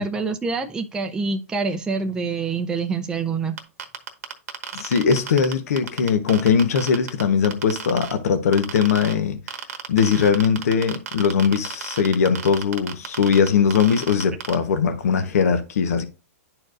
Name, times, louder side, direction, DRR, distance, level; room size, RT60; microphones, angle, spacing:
voice 1, 0.0-3.6, right 4 dB, 10° right, 0.5 m, -26 dB
sound 1, 3.6-8.1 8.5-9.1 9.5-14.5, right 8 dB, 80° right, 1.1 m, -32 dB
voice 2, 4.7-9.4 9.9-16.0, left 6 dB, 75° left, 1.0 m, -20 dB
10.5 x 4.5 x 2.5 m
hypercardioid pair, 135°, 8 cm